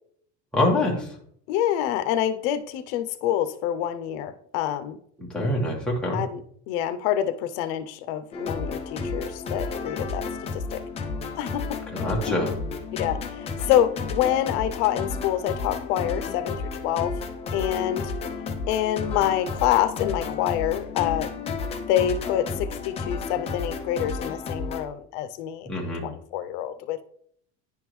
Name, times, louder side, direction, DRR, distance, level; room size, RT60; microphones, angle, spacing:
voice 1, 0.5-1.1 5.2-6.2 11.9-12.6 25.7-26.0, left 1 dB, 5° left, -4 dB, 1.4 m, -25 dB
voice 2, 1.5-5.0 6.1-6.4 6.7-10.3 10.5-10.8 11.3-11.7 12.3-12.4 13.0-16.6 16.8-17.1 17.5-18.1 18.7-21.3 21.9-25.7 26.0-27.0, left 11 dB, 85° left, 10 dB, 0.6 m, -26 dB
sound 1, 8.3-24.8, left 4 dB, 20° left, 0.5 m, -32 dB
10.5 x 3.6 x 3.1 m, 0.64 s
cardioid pair, 170°, 33 cm